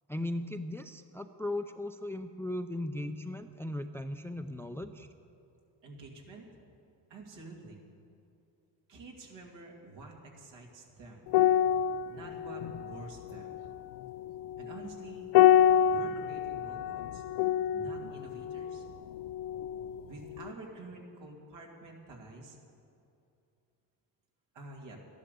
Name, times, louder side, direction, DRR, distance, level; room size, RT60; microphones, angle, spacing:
voice 1, 0.1-5.1, left 1 dB, 5° left, 9 dB, 0.4 m, -37 dB
voice 2, 5.8-6.5 7.1-7.8 8.9-11.3 12.1-13.6 14.6-15.3 15.8-17.2 17.7-18.8 20.1-22.6 24.5-25.0, right 2 dB, 75° right, 0 dB, 2.5 m, -48 dB
sound 1, 11.3-20.0 20.3-20.5, left 10 dB, 70° left, 0.5 m, -28 dB
12.0 x 10.5 x 6.8 m, 2.7 s
cardioid pair, 90°, 44 cm